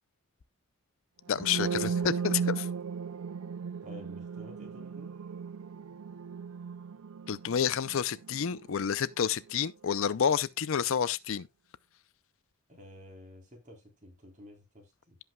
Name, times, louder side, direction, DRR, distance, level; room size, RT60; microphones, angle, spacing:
voice 1, 1.3-2.7 7.3-11.5, left 7 dB, 60° left, 0.5 m, -29 dB
sound 1, 1.3-9.1, right 6 dB, 70° right, 0.5 m, -36 dB
voice 2, 3.8-5.1 12.7-15.2, left 1 dB, 35° right, 3.7 m, -51 dB
16.5 x 5.5 x 2.2 m
head